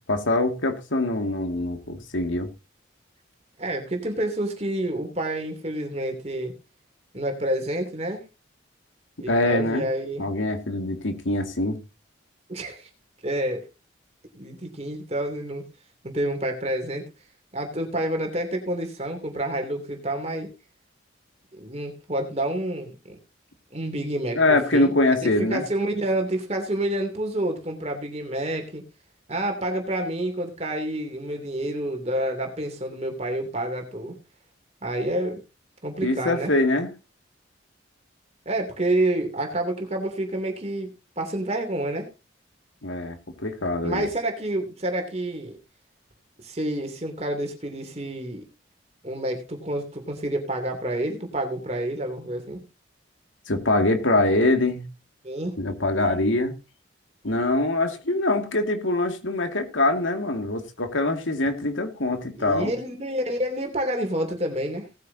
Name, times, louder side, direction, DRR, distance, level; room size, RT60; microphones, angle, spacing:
voice 1, 0.1-2.5 9.3-9.9 10.2-11.8 24.3-25.6 36.0-36.9 42.8-44.1 53.5-54.9 55.6-56.5 57.2-62.7, left 2 dB, 75° left, 2.2 m, -24 dB
voice 2, 3.6-6.5 7.1-8.3 9.2-10.2 12.5-12.9 13.2-13.7 14.3-15.6 16.0-17.0 17.5-20.5 21.6-23.2 23.7-24.9 25.2-28.8 29.3-34.2 34.8-35.4 35.8-36.5 38.4-42.1 43.8-45.6 46.4-48.4 49.0-52.6 55.2-55.5 62.4-64.9, right 1 dB, 30° right, 2.9 m, -28 dB
18.5 x 9.7 x 2.8 m
head